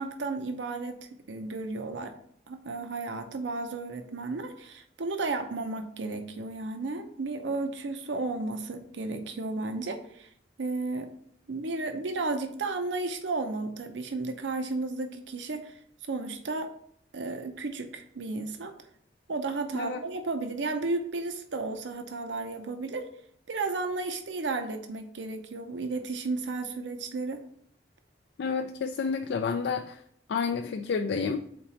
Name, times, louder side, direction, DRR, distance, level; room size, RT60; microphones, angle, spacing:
voice 1, 0.0-2.1 2.5-10.3 10.6-11.1 11.5-15.8 16.1-16.7 17.1-18.7 19.3-23.1 23.5-27.4, right 3 dB, 85° right, 6 dB, 0.6 m, -33 dB
voice 2, 28.4-30.0 30.3-31.4, left 5 dB, 70° left, 6 dB, 0.4 m, -30 dB
4.4 x 4.0 x 5.6 m, 0.67 s
head